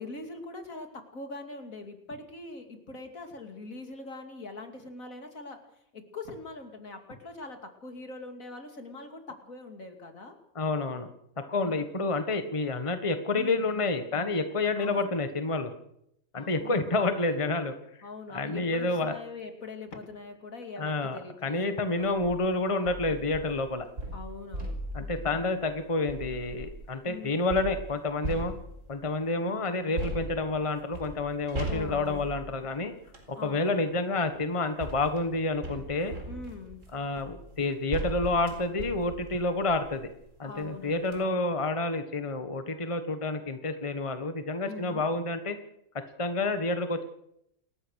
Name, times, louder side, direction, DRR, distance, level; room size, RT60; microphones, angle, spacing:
voice 1, 0.0-5.6 5.9-10.4 13.3-13.7 14.8-15.2 16.4-17.0 17.3-17.4 18.0-22.4 24.1-24.8 27.0-27.5 31.7-32.2 33.4-33.8 36.3-36.8 40.4-41.5 44.6-45.1, left 3 dB, 65° left, 5 dB, 3.1 m, -42 dB
voice 2, 10.5-11.1 11.4-15.7 16.3-17.7 18.3-19.1 20.8-23.9 24.9-28.5 28.9-32.9 33.3-36.1 36.9-40.1 40.4-45.6 46.2-47.0, left 2 dB, 20° left, 8 dB, 1.5 m, -29 dB
sound 1, 22.0-22.4 22.9-26.9 27.5-29.1 30.0-33.3 34.3-40.2 40.6-40.7 41.0-41.2, right 1 dB, 55° right, 4.6 m, -39 dB
28.5 x 14.0 x 6.5 m, 0.76 s
omnidirectional pair, 1.5 m